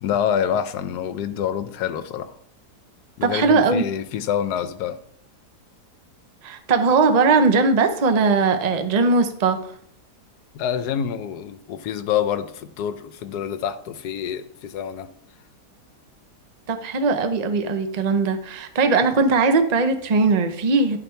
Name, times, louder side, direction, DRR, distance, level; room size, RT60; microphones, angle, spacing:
voice 1, 0.0-2.3 3.2-5.0 10.5-15.1, left 9 dB, 75° left, 12 dB, 1.2 m, -26 dB
voice 2, 3.2-3.8 6.4-9.7 16.7-21.0, right 4 dB, 45° right, 7 dB, 0.5 m, -19 dB
11.0 x 4.1 x 4.4 m, 0.65 s
omnidirectional pair, 1.8 m